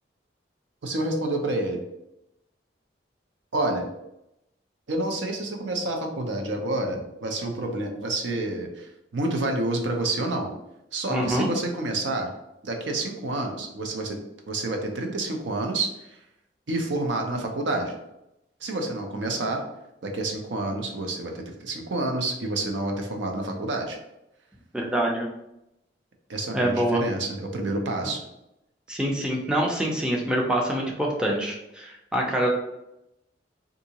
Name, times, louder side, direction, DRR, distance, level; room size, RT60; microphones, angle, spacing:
voice 1, 0.8-1.8 3.5-3.9 4.9-10.5 10.9-12.3 12.6-14.2 14.5-16.2 16.7-17.9 18.6-19.6 20.0-24.0 26.3-28.2, right 2 dB, 90° right, 3 dB, 0.6 m, -28 dB
voice 2, 11.1-11.5 24.7-25.3 26.5-27.0 28.9-32.5, right 1 dB, 5° right, -1 dB, 0.5 m, -25 dB
3.6 x 2.6 x 2.8 m, 0.86 s
head